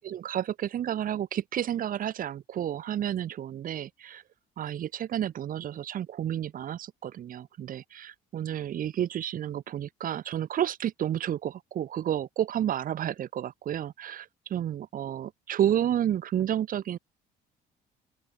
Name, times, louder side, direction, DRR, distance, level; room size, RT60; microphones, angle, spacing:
voice 1, 0.0-4.2 4.6-17.0, right 10 dB, 55° right, 2.7 m, -31 dB
open air
cardioid pair, 110°, 17 cm